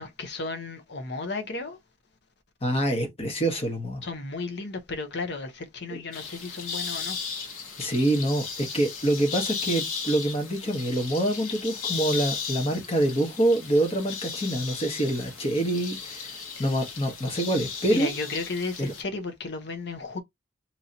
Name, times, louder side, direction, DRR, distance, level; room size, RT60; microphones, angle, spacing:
voice 1, 0.0-1.8 4.0-7.2 16.6-16.7 17.9-20.2, left 3 dB, 55° left, 0.7 m, -34 dB
voice 2, 2.6-4.0 5.9-6.0 7.8-16.3 16.6-18.1 18.8-18.9, right 1 dB, 30° left, 1.2 m, -26 dB
sound 1, 6.1-19.0, left 5 dB, 80° left, 1.2 m, -36 dB
2.9 x 2.8 x 3.9 m
head